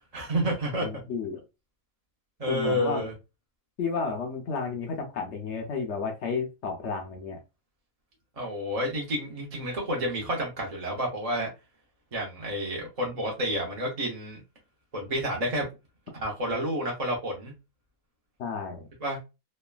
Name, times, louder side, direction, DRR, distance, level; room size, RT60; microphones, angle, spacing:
voice 1, 0.1-0.9 2.4-3.1 8.4-11.5 12.1-14.4 14.9-15.6 16.2-17.5 19.0-19.2, equal, 40° right, 0.6 m, -30 dB
voice 2, 0.8-1.4 2.5-3.1 3.8-7.4 18.4-18.9, left 5 dB, 65° left, 0.7 m, -32 dB
3.2 x 2.2 x 2.2 m
omnidirectional pair, 1.5 m